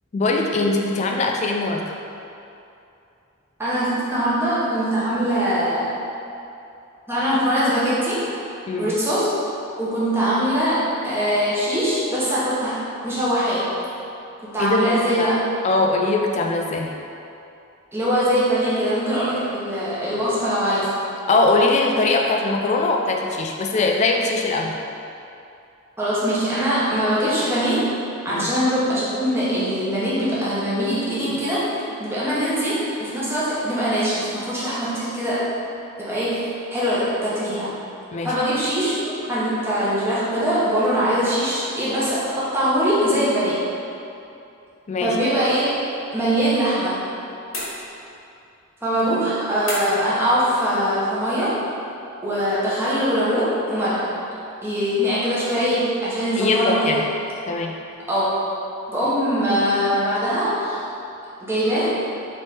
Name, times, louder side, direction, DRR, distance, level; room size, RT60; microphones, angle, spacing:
voice 1, 0.1-2.0 8.7-8.9 14.6-15.4 15.6-16.9 21.3-24.8 28.3-28.5 38.1-38.4 44.9-45.2 56.4-57.0 57.5-57.7, left 3 dB, 35° left, 1 dB, 0.3 m, -21 dB
voice 2, 3.6-5.9 7.1-8.2 8.8-9.3 9.8-12.8 13.0-13.7 14.4-15.4 17.9-20.9 26.0-27.9 28.2-35.5 36.0-37.7 38.2-42.2 42.5-43.6 45.0-45.7 46.1-47.0 48.8-51.6 52.2-54.1 54.6-56.9 58.1-58.3 58.9-60.8 61.4-62.0, equal, 10° right, -10 dB, 0.8 m, -22 dB
sound 1, 47.5-48.3 49.7-50.2, left 1 dB, 80° left, 1.3 m, -31 dB
3.4 x 3.1 x 4.2 m, 2.7 s
head